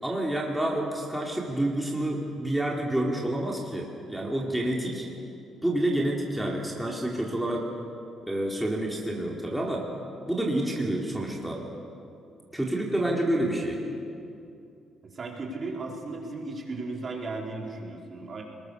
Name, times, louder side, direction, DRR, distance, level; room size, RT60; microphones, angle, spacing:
voice 1, 0.0-5.1 5.6-7.7 8.2-9.9 10.3-11.6 12.5-13.8, right 1 dB, 5° right, -2 dB, 3.6 m, -28 dB
voice 2, 15.0-18.4, right 3 dB, 40° right, -2 dB, 5.1 m, -36 dB
29.5 x 21.0 x 6.9 m, 2.5 s
cardioid pair, 90°, 0 cm